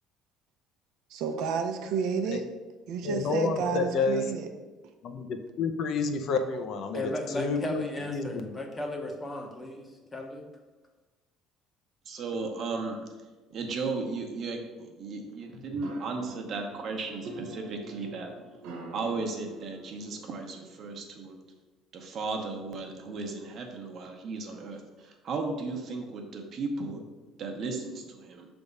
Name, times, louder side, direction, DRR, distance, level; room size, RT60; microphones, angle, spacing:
voice 1, 1.1-2.5 2.9-4.5, right 5 dB, 70° right, 6 dB, 0.6 m, -30 dB
voice 2, 3.0-4.2 5.0-8.5, left 4 dB, 50° left, 6 dB, 0.6 m, -30 dB
voice 3, 6.9-10.5, left 1 dB, 15° left, 3 dB, 0.8 m, -36 dB
voice 4, 12.0-13.0 13.5-18.3 18.9-21.4 21.9-27.0 27.4-28.5, right 3 dB, 40° right, 3 dB, 0.9 m, -35 dB
sound 1, 15.7-20.9, right 3 dB, 85° right, 1.1 m, -45 dB
6.0 x 3.5 x 5.3 m, 1.2 s
cardioid pair, 160°, 0 cm